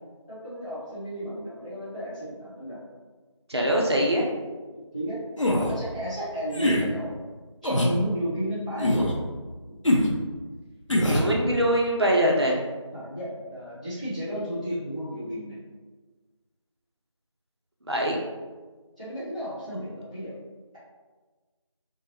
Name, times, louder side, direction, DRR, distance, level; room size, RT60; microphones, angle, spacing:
voice 1, 0.3-2.8 4.9-5.2 5.7-7.1 7.6-9.1 9.7-9.8 12.9-15.6 19.0-20.3, equal, 15° left, -15 dB, 1.0 m, -33 dB
voice 2, 3.5-4.3 11.1-12.6 17.9-18.2, equal, 55° right, -2 dB, 0.6 m, -23 dB
sound 1, 5.4-5.7 6.5-6.9 7.6-8.0 8.8-9.2 9.8-10.1 10.9-11.3, left 1 dB, 75° left, 0.8 m, -22 dB
3.6 x 2.7 x 2.8 m, 1.3 s
figure-of-eight pair, 175°, 16 cm